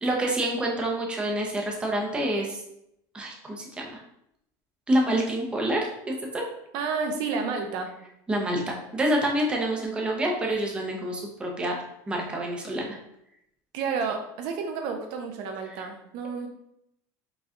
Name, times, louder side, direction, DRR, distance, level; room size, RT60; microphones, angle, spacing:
voice 1, 0.0-2.6 3.1-4.0 4.9-6.4 8.3-11.8 12.1-13.0, right 1 dB, 10° right, 0 dB, 0.7 m, -27 dB
voice 2, 6.7-7.9 13.7-16.5, right 5 dB, 55° right, 4 dB, 0.6 m, -30 dB
4.9 x 2.3 x 3.7 m, 0.78 s
cardioid pair, 165°, 9 cm